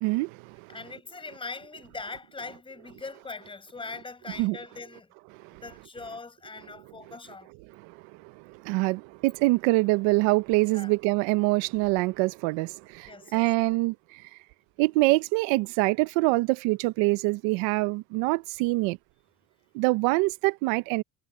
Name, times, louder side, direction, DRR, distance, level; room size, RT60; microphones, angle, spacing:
voice 1, 0.0-0.7 4.4-4.6 5.4-5.6 7.7-14.3 14.8-19.0 19.7-21.0, right 23 dB, 80° right, 0.8 m, -25 dB
voice 2, 0.7-5.1 5.6-7.5 10.7-10.9 13.0-13.5, left 3 dB, 10° left, 4.7 m, -41 dB
cardioid pair, 180°, 44 cm